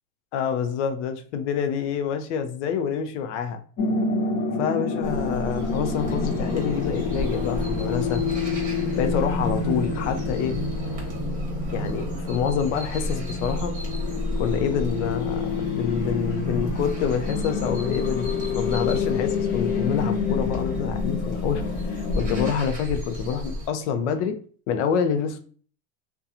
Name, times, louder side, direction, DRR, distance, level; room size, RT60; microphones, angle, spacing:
voice 1, 0.3-3.6 4.6-8.2 9.0-10.6 11.7-13.7 14.4-24.4 24.7-25.4, left 7 dB, 75° left, 7 dB, 0.6 m, -27 dB
sound 1, 3.8-22.5, left 4 dB, 25° left, 0.5 m, -28 dB
sound 2, 5.0-23.7, left 1 dB, 20° right, 1.0 m, -33 dB
2.7 x 2.3 x 2.4 m, 0.43 s
supercardioid pair, 130°, 36 cm